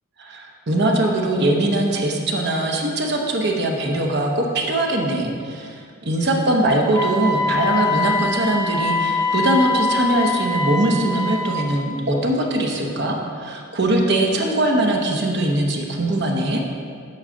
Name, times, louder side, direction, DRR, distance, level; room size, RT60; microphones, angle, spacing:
voice 1, 0.2-16.6, right 1 dB, 50° right, 1 dB, 0.8 m, -21 dB
Wind instrument woodwind instrument, 6.9-11.7, left 3 dB, 15° left, 0.5 m, -23 dB
8.5 x 6.4 x 3.7 m, 2.2 s
head